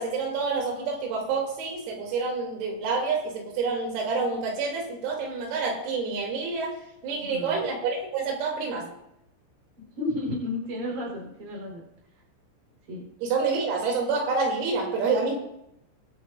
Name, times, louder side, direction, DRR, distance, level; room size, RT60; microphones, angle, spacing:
voice 1, 0.0-6.8 7.0-8.9 13.2-15.3, right 4 dB, 90° right, -1 dB, 5.9 m, -28 dB
voice 2, 7.1-7.6 10.0-11.8 12.9-13.1 15.3-15.4, left 2 dB, 40° right, -1 dB, 5.3 m, -32 dB
23.0 x 13.0 x 2.7 m, 0.80 s
omnidirectional pair, 5.9 m